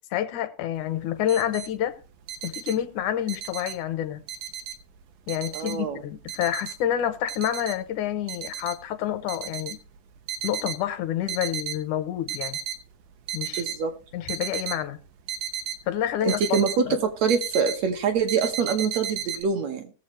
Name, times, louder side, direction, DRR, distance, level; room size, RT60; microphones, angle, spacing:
voice 1, 0.1-2.0 2.4-4.2 5.3-9.8 10.4-12.6 13.3-13.6 14.1-15.0 15.9-16.6 16.9-17.0, left 11 dB, 75° left, 2.2 m, -28 dB
sound 1, 0.8-0.9 1.1-1.7 2.0-3.9 4.3-5.0 5.3-7.0 7.3-7.8 8.3-8.8 9.2-10.8 11.2-11.8 12.2-12.8 13.1-13.8 14.3-16.8 17.0-17.9 18.3-19.4, right 9 dB, 80° right, 2.5 m, -34 dB
voice 2, 5.5-6.0 13.6-13.9 16.2-19.9, right 5 dB, 65° right, 2.1 m, -25 dB
19.0 x 7.3 x 3.1 m
omnidirectional pair, 3.7 m